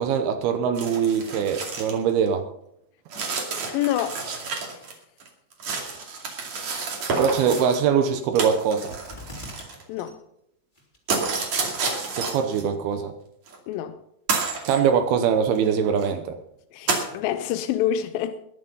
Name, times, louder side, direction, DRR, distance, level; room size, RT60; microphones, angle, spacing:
voice 1, 0.0-2.4 7.2-9.0 12.1-13.1 14.7-16.4, right 7 dB, 80° right, 7 dB, 2.8 m, -22 dB
sound 1, 0.8-2.0 2.3-2.4 3.1-4.9 5.2-7.8 8.4-10.1 11.1-12.6 13.5-13.6 14.3-14.8 15.6-15.7 16.0-16.1 16.9-17.1, right 4 dB, 50° right, 3.3 m, -29 dB
voice 2, 3.7-4.2 4.7-4.9 9.9-10.2 13.7-14.0 16.7-18.4, left 11 dB, 80° left, 10 dB, 2.1 m, -27 dB
sound 2, 8.9-9.8 10.1-10.2 10.7-11.2 11.7-11.8, left 1 dB, 15° left, 2.9 m, -41 dB
21.0 x 7.1 x 5.5 m, 0.77 s
omnidirectional pair, 4.5 m